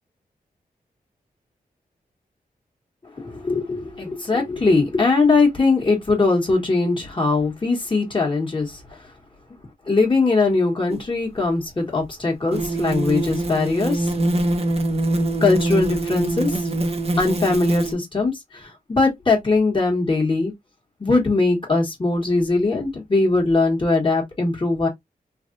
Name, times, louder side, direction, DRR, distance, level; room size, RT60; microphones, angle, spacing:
voice 1, 3.2-9.0 9.9-14.1 15.4-16.6 17.2-20.5 21.0-24.9, left 3 dB, 30° left, 1.4 m, -21 dB
sound 1, 10.9-11.0 12.5-17.9, right 2 dB, 40° right, 0.7 m, -24 dB
3.3 x 2.4 x 2.5 m
wide cardioid pair, 85°, 16 cm